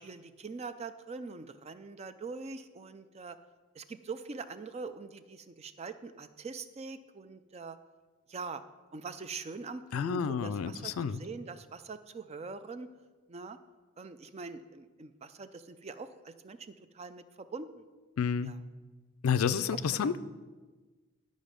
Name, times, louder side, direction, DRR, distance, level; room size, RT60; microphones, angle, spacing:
voice 1, 0.0-3.4 3.7-7.8 8.3-8.6 8.9-12.9 13.3-13.6 14.0-16.6 16.9-17.9 18.4-18.6 19.7-20.1, right 4 dB, 30° right, 11 dB, 0.4 m, -43 dB
voice 2, 9.9-11.2 18.2-18.5 19.2-20.2, left 6 dB, 85° left, 13 dB, 0.4 m, -30 dB
11.0 x 5.2 x 5.1 m, 1.3 s
head